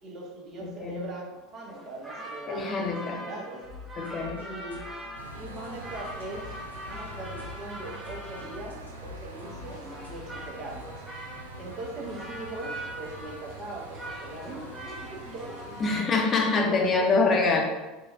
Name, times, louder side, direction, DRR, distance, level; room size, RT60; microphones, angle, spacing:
voice 1, 0.0-2.7 3.0-3.7 4.4-4.9 5.3-6.5 6.8-11.0 11.6-16.1 16.6-17.6, right 2 dB, 40° right, -1 dB, 1.1 m, -40 dB
voice 2, 0.6-1.0 2.5-3.2 4.0-4.4 15.8-17.6, left 3 dB, 35° left, 1 dB, 0.8 m, -25 dB
sound 1, 1.6-16.7, right 1 dB, 15° right, 0.9 m, -42 dB
sound 2, 3.6-10.9, left 5 dB, 90° left, 0.8 m, -48 dB
sound 3, 5.1-15.9, right 1 dB, 90° right, 0.5 m, -45 dB
4.4 x 2.4 x 3.6 m, 1.1 s
figure-of-eight pair, 75°, 0 cm